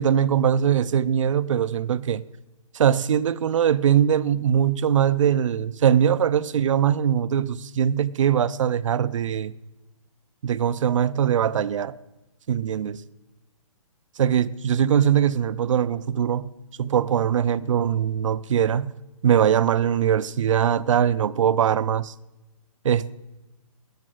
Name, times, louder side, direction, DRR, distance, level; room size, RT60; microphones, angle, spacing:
voice 1, 0.0-2.2 2.7-9.5 10.4-11.9 12.5-13.0 14.2-16.5 16.8-18.9 19.2-22.1 22.8-23.1, right 9 dB, 60° right, 0.6 m, -21 dB
14.0 x 9.7 x 7.8 m
hypercardioid pair, 150°, 18 cm